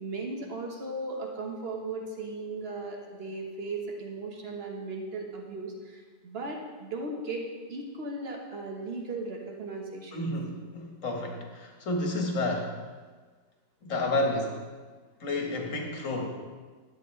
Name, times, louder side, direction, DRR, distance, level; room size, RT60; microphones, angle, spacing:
voice 1, 0.0-7.4 7.7-10.3, right 3 dB, 50° right, 1 dB, 1.5 m, -37 dB
voice 2, 10.1-12.8 13.8-14.6 15.2-16.3, left 2 dB, 75° left, 2 dB, 1.7 m, -30 dB
12.0 x 8.4 x 3.2 m, 1.4 s
omnidirectional pair, 1.4 m